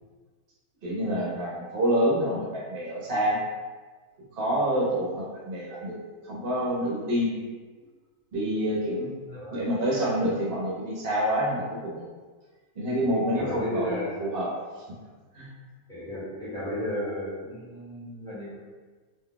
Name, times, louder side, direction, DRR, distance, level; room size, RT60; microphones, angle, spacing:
voice 1, 0.8-3.4 4.3-6.0 6.2-7.4 8.3-9.1 9.5-12.1 12.8-14.5 14.8-14.9 15.3-15.5, equal, 50° right, -5 dB, 0.8 m, -27 dB
voice 2, 9.3-9.6 13.3-14.3 15.9-18.5, equal, 5° left, -10 dB, 0.9 m, -33 dB
2.6 x 2.2 x 3.8 m, 1.4 s
omnidirectional pair, 1.6 m